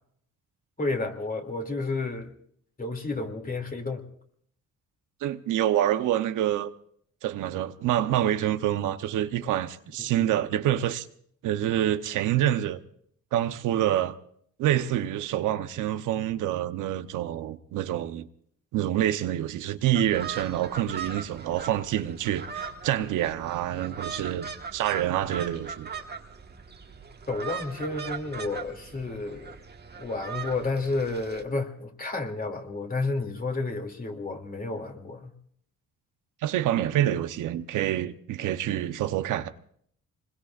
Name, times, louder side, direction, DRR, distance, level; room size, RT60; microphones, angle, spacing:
voice 1, 0.8-2.3 2.8-4.0 27.3-29.6 30.0-35.3, left 3 dB, 30° left, 2.7 m, -31 dB
voice 2, 5.2-6.7 7.2-11.1 11.4-12.8 13.3-14.1 14.6-18.3 18.7-25.9 36.4-39.5, right 12 dB, 85° right, 0.9 m, -27 dB
sound 1, 19.9-31.4, right 6 dB, 35° right, 1.5 m, -40 dB
25.5 x 21.5 x 2.5 m
cardioid pair, 90°, 30 cm